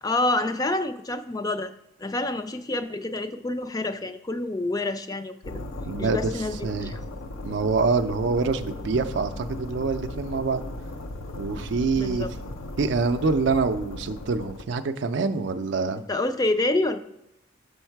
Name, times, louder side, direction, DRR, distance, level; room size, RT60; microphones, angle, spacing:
voice 1, 0.0-1.7 2.0-5.6 6.0-7.0 12.0-12.3 16.1-17.0, left 2 dB, 20° left, 10 dB, 0.3 m, -27 dB
sound 1, 5.4-14.6, left 1 dB, 80° left, 0.6 m, -36 dB
voice 2, 5.8-6.9 7.4-10.6 11.3-12.3 12.8-16.0, right 4 dB, 60° right, 9 dB, 0.4 m, -26 dB
6.4 x 5.3 x 4.5 m, 0.86 s
head